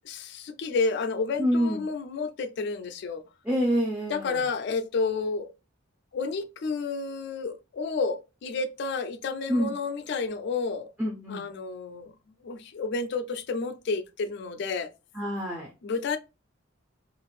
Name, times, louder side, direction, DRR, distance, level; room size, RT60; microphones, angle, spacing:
voice 1, 0.0-3.2 4.1-5.5 6.1-10.9 11.3-12.1 12.4-14.9 15.8-16.2, left 4 dB, 55° left, 0.3 m, -30 dB
voice 2, 1.4-1.8 3.4-4.5 9.5-9.7 11.0-11.4 15.1-15.7, equal, 5° right, 0.5 m, -27 dB
2.5 x 2.4 x 3.1 m
head